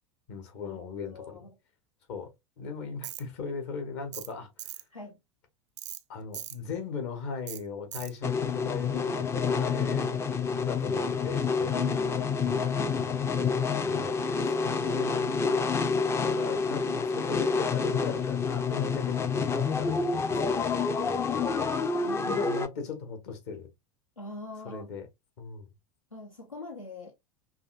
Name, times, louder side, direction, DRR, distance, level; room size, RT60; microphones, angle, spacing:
voice 1, 0.3-1.4 2.1-2.3 2.6-4.5 6.1-10.2 10.6-11.7 12.1-12.3 12.9-13.3 13.8-14.1 14.4-15.6 16.2-23.7 24.6-25.1 25.4-25.7, left 5 dB, 55° left, 1.4 m, -38 dB
voice 2, 1.1-1.6 4.9-5.2 11.7-13.1 22.0-22.5 24.2-24.9 26.1-27.1, left 2 dB, 85° left, 0.9 m, -42 dB
Tools, 3.0-3.2 4.1-4.3 4.6-4.8 5.8-6.0 6.3-6.6 7.5-7.6 7.9-8.1, right 12 dB, 60° right, 0.4 m, -39 dB
sound 1, 8.2-22.7, left 5 dB, 15° left, 0.4 m, -28 dB
5.7 x 2.5 x 2.4 m
figure-of-eight pair, 80°, 17 cm